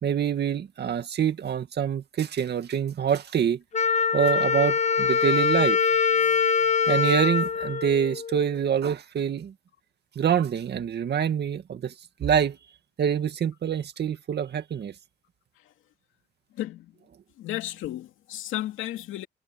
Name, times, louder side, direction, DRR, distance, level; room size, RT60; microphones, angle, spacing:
voice 1, 0.0-3.6 4.1-5.8 6.9-9.5 10.2-11.9 12.2-12.6 13.0-14.9, right 8 dB, 55° right, 2.2 m, -25 dB
Wind instrument woodwind instrument, 3.7-8.5, left 6 dB, 35° left, 0.8 m, -23 dB
voice 2, 16.5-17.0 17.4-19.3, left 14 dB, 85° left, 2.5 m, -33 dB
cardioid pair, 90°, 20 cm